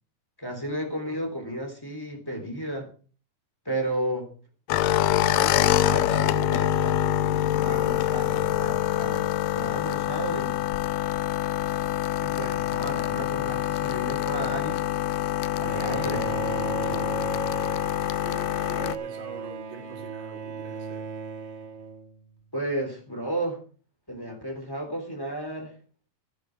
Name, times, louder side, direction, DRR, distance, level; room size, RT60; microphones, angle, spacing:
voice 1, 0.4-2.9 3.6-4.3 4.7-5.0 5.4-7.0 7.6-10.6 12.2-14.8 15.5-16.3 16.8-16.9 22.5-23.6 24.1-25.7, right 1 dB, 5° left, 5 dB, 2.7 m, -33 dB
sound 1, 4.7-19.0, left 12 dB, 80° left, 2.2 m, -25 dB
Bowed string instrument, 15.6-22.4, right 6 dB, 50° right, 2.7 m, -36 dB
voice 2, 18.2-21.1, right 7 dB, 70° right, 1 dB, 5.4 m, -45 dB
16.0 x 9.5 x 4.6 m, 0.38 s
omnidirectional pair, 4.5 m